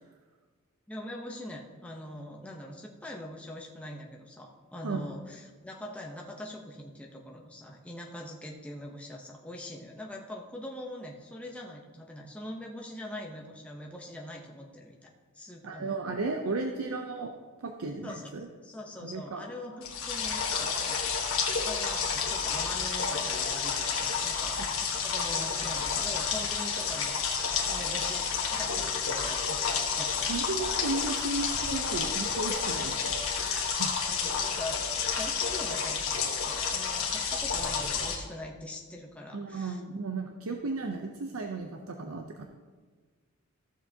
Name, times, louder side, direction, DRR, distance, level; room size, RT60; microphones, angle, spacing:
voice 1, 0.9-15.1 15.3-16.0 18.0-21.4 21.6-27.2 27.7-30.3 34.1-39.8, left 1 dB, 5° left, -1 dB, 0.7 m, -43 dB
voice 2, 15.6-17.3 17.6-18.5 19.0-19.4 30.3-33.1 33.4-33.9 39.3-42.4, right 3 dB, 85° right, 4 dB, 0.6 m, -34 dB
sound 1, 19.8-38.2, left 6 dB, 75° left, 1.3 m, -30 dB
14.0 x 7.3 x 2.8 m, 1.4 s
head